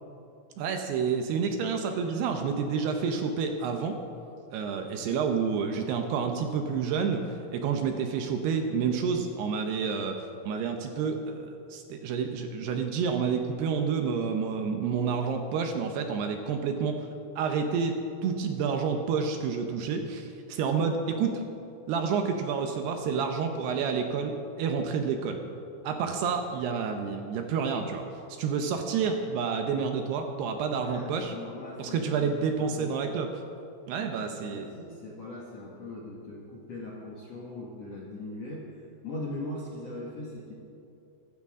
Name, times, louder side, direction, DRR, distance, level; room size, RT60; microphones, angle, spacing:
voice 1, 0.6-4.0 4.5-17.1 17.4-21.4 21.9-25.4 25.8-28.0 28.4-31.3 31.8-33.3 33.9-34.7, right 6 dB, 75° right, 5 dB, 2.7 m, -29 dB
voice 2, 30.5-32.3 32.5-33.1 34.0-34.1 34.5-38.7 39.0-40.5, left 2 dB, 55° left, -4 dB, 1.9 m, -40 dB
24.0 x 12.5 x 3.7 m, 2.6 s
omnidirectional pair, 5.2 m